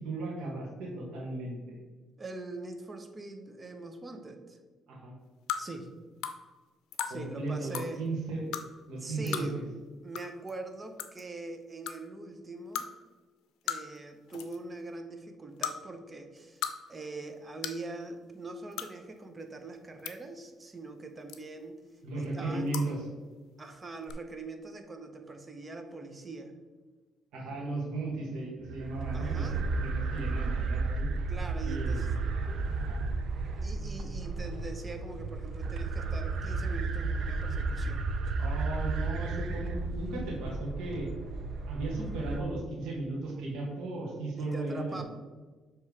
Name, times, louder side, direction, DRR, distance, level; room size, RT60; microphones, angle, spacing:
voice 1, 0.0-1.8 4.9-5.1 7.1-8.6 8.9-9.6 22.0-23.0 27.3-31.1 31.6-32.0 32.4-33.0 38.4-41.1 41.7-45.0, right 2 dB, 85° right, -3 dB, 1.5 m, -36 dB
voice 2, 2.2-4.6 5.6-5.9 7.0-8.1 9.0-9.5 10.0-12.9 13.6-16.6 16.9-21.8 22.2-22.8 23.6-26.5 29.1-29.6 31.3-32.1 33.6-38.0 44.4-45.0, right 3 dB, 25° right, 6 dB, 0.9 m, -42 dB
sound 1, 5.5-5.6 6.2-6.4 6.9-7.1 7.7-7.9 8.5-8.6 9.3-9.5 10.1-10.2 10.5-10.6 11.0-11.2 11.9-12.0 12.7-12.9 13.7-14.0 14.3-14.6 15.6-15.7 16.4-16.7 17.0-17.1 17.6-17.8 18.7-18.9 19.7-20.1 21.3-21.6 22.7-22.9 24.0-24.1, left 10 dB, 90° left, 0.5 m, -35 dB
sound 2, 28.6-42.4, right 3 dB, 65° right, 0.7 m, -33 dB
7.1 x 3.2 x 4.7 m, 1.3 s
cardioid pair, 90°, 0 cm